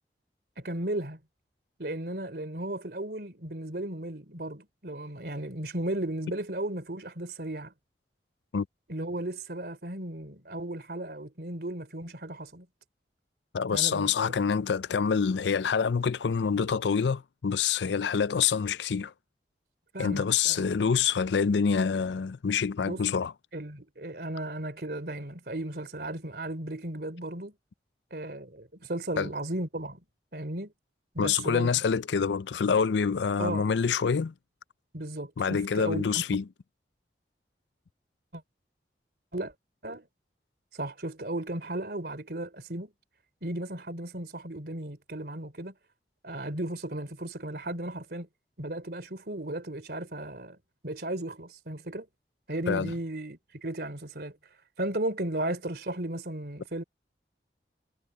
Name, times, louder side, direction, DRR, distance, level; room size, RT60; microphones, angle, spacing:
voice 1, 0.6-1.2 1.8-7.7 8.9-12.7 13.7-14.1 19.9-20.7 22.8-23.0 23.5-27.5 28.1-30.0 30.3-30.7 31.1-31.7 33.4-33.7 34.9-36.2 38.3-38.4 39.3-39.5 39.8-40.1 40.7-42.9 43.4-45.7 46.2-48.3 48.6-50.6 50.8-52.1 52.5-54.4 54.8-56.8, right 1 dB, 60° right, 3.2 m, -35 dB
voice 2, 13.5-19.1 20.0-23.3 29.2-29.3 31.2-34.3 35.4-36.4 52.7-52.9, left 6 dB, 90° left, 0.5 m, -26 dB
head